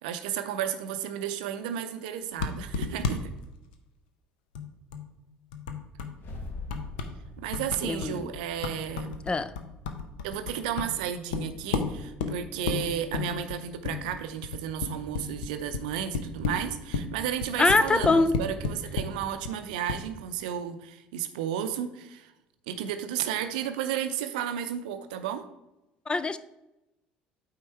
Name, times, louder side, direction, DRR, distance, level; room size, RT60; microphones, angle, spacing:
voice 1, 0.0-3.3 7.4-9.3 10.2-22.3 22.7-25.4, right 9 dB, 65° right, 0.5 m, -33 dB
sound 1, 2.4-3.1 3.4-3.5 3.7-3.8 4.5-5.2 5.5-6.3 6.7-7.2 7.5-19.2 19.4-19.5 19.9-20.0, left 5 dB, 70° left, 0.6 m, -34 dB
sound 2, 6.1-10.4, left 2 dB, 45° left, 1.1 m, -44 dB
voice 2, 7.9-8.2 9.3-9.5 17.6-18.4 26.1-26.4, left 3 dB, 20° left, 0.3 m, -23 dB
8.6 x 3.7 x 4.3 m
figure-of-eight pair, 60°, 5 cm